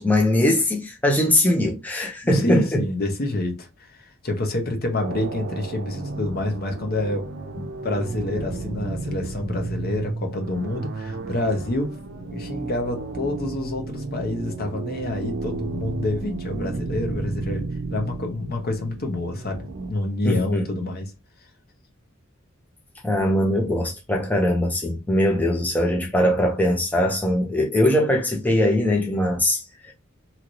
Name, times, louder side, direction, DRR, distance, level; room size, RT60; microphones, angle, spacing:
voice 1, 0.0-2.8 20.2-20.6 23.0-29.9, left 1 dB, 10° left, 0.4 m, -21 dB
voice 2, 2.3-11.9 12.3-21.1, left 2 dB, 50° left, 0.8 m, -28 dB
sound 1, 5.0-19.9, right 3 dB, 60° right, 0.5 m, -33 dB
2.9 x 2.6 x 3.0 m
head